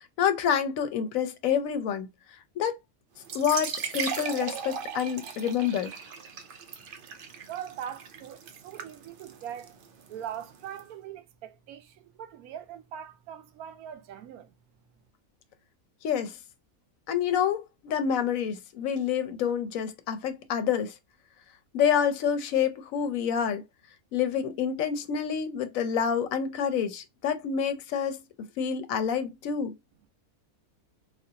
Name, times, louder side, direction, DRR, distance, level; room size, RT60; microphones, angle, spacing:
voice 1, 0.2-2.1 2.6-2.8 3.3-5.9 16.0-16.4 17.1-20.9 21.7-23.6 24.1-29.7, left 8 dB, 75° left, 1.0 m, -28 dB
sound 1, 3.2-10.8, right 6 dB, 65° right, 0.5 m, -38 dB
voice 2, 7.5-9.7 10.1-14.5, right 9 dB, 85° right, 1.1 m, -41 dB
3.7 x 2.5 x 2.7 m
omnidirectional pair, 1.5 m